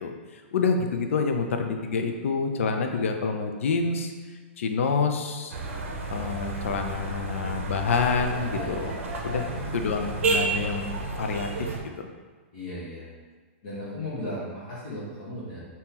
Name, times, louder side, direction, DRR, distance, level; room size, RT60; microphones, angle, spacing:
voice 1, 0.0-4.1 4.6-5.5 6.1-9.0 9.2-11.7 12.0-12.1, left 5 dB, 80° left, 5 dB, 0.4 m, -27 dB
sound 1, 5.5-11.8, right 3 dB, 75° right, 0.6 m, -31 dB
voice 2, 9.8-10.2 12.5-13.1 13.6-15.6, left 1 dB, 35° left, -8 dB, 0.9 m, -36 dB
3.6 x 2.7 x 2.8 m, 1.4 s
hypercardioid pair, 175°, 7 cm